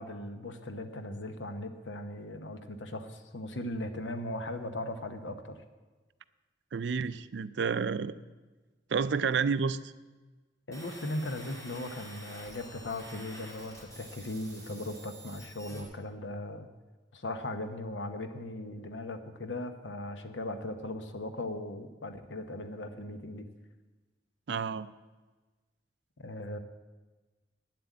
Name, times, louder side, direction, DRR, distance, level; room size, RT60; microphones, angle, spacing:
voice 1, 0.0-5.6 10.7-16.7 17.1-23.5 26.2-26.6, left 1 dB, 80° left, 8 dB, 1.0 m, -38 dB
voice 2, 6.7-8.2 8.9-9.8 24.5-24.9, right 5 dB, 65° right, 15 dB, 0.4 m, -30 dB
sound 1, 10.7-15.8, equal, 15° left, 2.1 m, -48 dB
9.6 x 7.7 x 8.4 m, 1.3 s
head